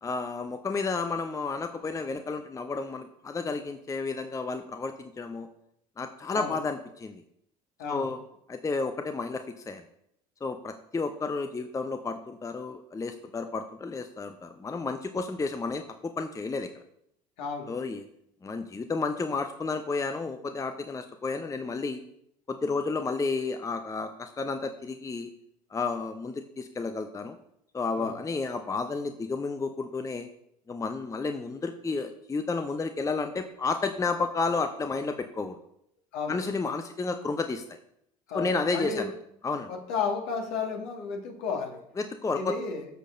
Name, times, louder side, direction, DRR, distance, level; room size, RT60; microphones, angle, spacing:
voice 1, 0.0-5.5 6.0-7.2 7.9-8.2 8.5-9.8 10.4-16.7 17.7-18.0 18.4-22.0 22.5-25.3 25.7-27.4 27.7-30.3 30.7-35.6 36.3-37.8 38.3-39.1 39.4-39.7 42.0-42.6, left 4 dB, 15° left, 8 dB, 0.6 m, -31 dB
voice 2, 7.8-8.1 17.4-17.7 28.0-28.2 36.1-36.4 38.3-39.1 39.7-41.8 42.4-42.9, left 5 dB, 60° left, 1 dB, 1.8 m, -33 dB
12.5 x 6.5 x 2.6 m, 0.74 s
figure-of-eight pair, 60°, 20 cm